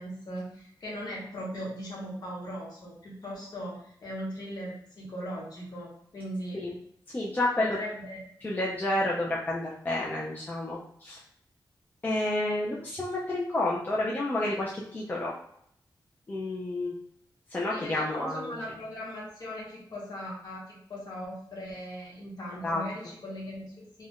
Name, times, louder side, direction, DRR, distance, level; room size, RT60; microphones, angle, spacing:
voice 1, 0.0-6.6 7.6-8.2 17.7-24.1, equal, 55° left, -5 dB, 1.0 m, -39 dB
voice 2, 7.1-7.8 8.4-11.2 12.0-15.3 16.3-16.9 17.5-18.5 22.6-22.8, left 1 dB, 20° left, -4 dB, 0.3 m, -30 dB
2.4 x 2.1 x 3.4 m, 0.69 s
wide cardioid pair, 170°, 8 cm